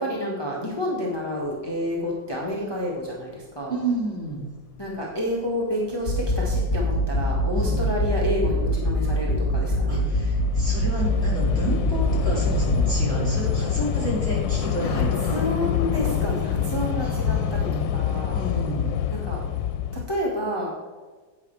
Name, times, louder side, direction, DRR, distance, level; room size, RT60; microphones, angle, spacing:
voice 1, 0.0-3.7 4.8-10.1 14.8-15.0 15.3-18.4 19.1-19.4 20.1-20.7, left 1 dB, 15° left, -4 dB, 1.6 m, -29 dB
voice 2, 3.7-4.5 7.5-7.9 9.9-15.4 17.0-17.9 18.3-19.0, right 2 dB, 35° right, -4 dB, 2.6 m, -30 dB
Train / Subway metro underground, 6.0-6.1 7.0-7.2 7.5-20.0, left 8 dB, 80° left, 1.3 m, -27 dB
sound 1, 6.1-12.9, equal, 45° left, 2.6 m, -24 dB
10.5 x 8.6 x 3.4 m, 1.3 s
omnidirectional pair, 2.0 m